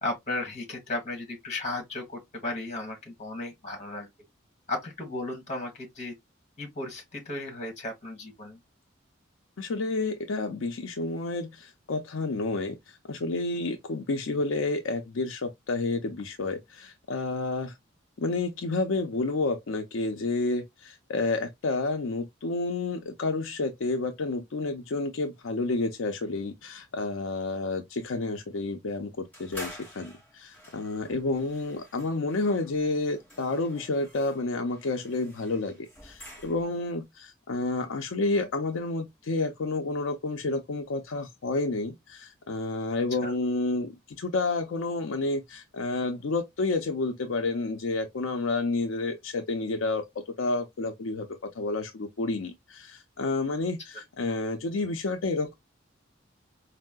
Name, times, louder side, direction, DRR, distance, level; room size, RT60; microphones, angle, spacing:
voice 1, 0.0-4.1 4.7-6.1 6.6-8.6 43.2-43.3, left 2 dB, 35° left, 1.4 m, -35 dB
voice 2, 9.6-17.7 18.2-29.1 29.4-50.1 50.4-51.3 51.5-55.5, left 3 dB, 85° left, 0.5 m, -30 dB
sound 1, 29.3-36.9, equal, 10° left, 1.3 m, -49 dB
4.4 x 2.0 x 2.2 m
head